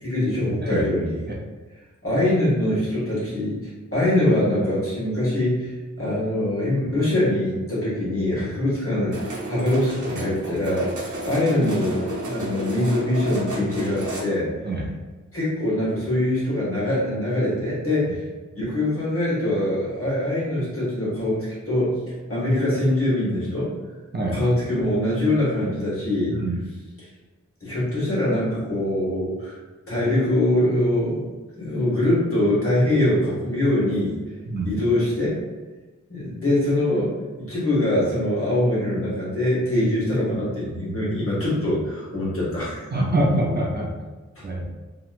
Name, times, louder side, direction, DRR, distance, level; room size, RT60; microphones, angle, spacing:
voice 1, 0.0-1.2 2.0-14.5 15.3-18.2 18.5-22.0 22.3-23.7 24.3-26.4 27.0-27.1 27.6-29.5 29.9-31.3 31.6-34.1 34.6-35.4 36.1-37.1 37.4-42.9, left 1 dB, 50° left, -8 dB, 1.5 m, -23 dB
sound 1, 9.1-14.2, right 1 dB, 85° right, 0.8 m, -32 dB
voice 2, 26.3-26.6 34.5-34.7 42.9-43.9 44.4-44.6, right 1 dB, 35° right, -3 dB, 0.5 m, -24 dB
2.9 x 2.8 x 2.4 m, 1.2 s
wide cardioid pair, 95°, 29 cm